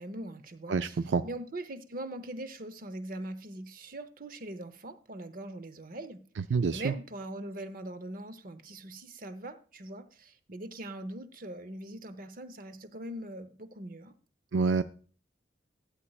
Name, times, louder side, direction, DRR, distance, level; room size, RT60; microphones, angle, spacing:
voice 1, 0.0-1.0 1.2-6.2 6.7-14.1, right 1 dB, 45° right, 12 dB, 0.8 m, -41 dB
voice 2, 0.7-1.2 6.4-6.9 14.5-14.8, right 4 dB, 75° right, 11 dB, 0.4 m, -27 dB
12.5 x 8.7 x 2.4 m, 0.40 s
head